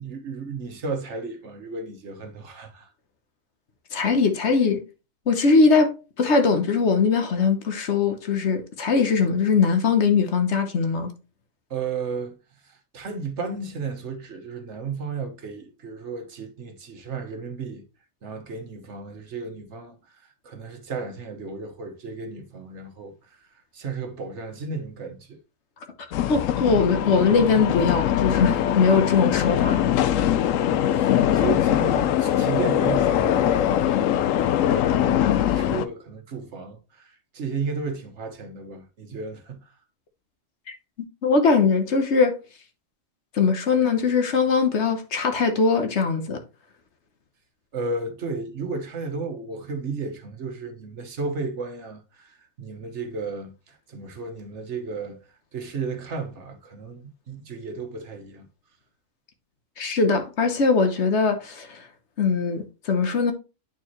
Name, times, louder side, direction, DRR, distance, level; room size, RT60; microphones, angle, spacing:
voice 1, 0.0-2.9 11.7-12.4 12.6-17.8 18.2-23.4 23.7-25.4 30.6-39.7 47.7-55.2 55.5-58.5, right 4 dB, 60° right, 1.3 m, -34 dB
voice 2, 3.9-4.8 5.3-11.1 26.3-29.8 41.2-42.4 43.3-46.4 59.8-61.9 62.2-63.3, left 5 dB, 60° left, 1.2 m, -21 dB
sound 1, 26.1-35.9, left 11 dB, 80° left, 0.9 m, -22 dB
8.6 x 4.5 x 3.0 m
omnidirectional pair, 1.4 m